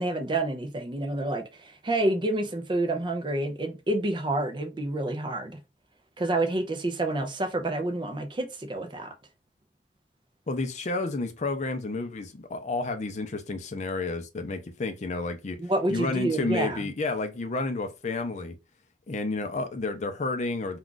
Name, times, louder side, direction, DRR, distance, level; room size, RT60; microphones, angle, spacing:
voice 1, 0.0-5.6 6.2-9.1 15.6-16.9, right 2 dB, 25° right, 0.4 m, -28 dB
voice 2, 10.5-15.6 15.9-18.6 19.1-20.8, left 3 dB, 40° left, 0.4 m, -31 dB
2.4 x 2.3 x 3.7 m
head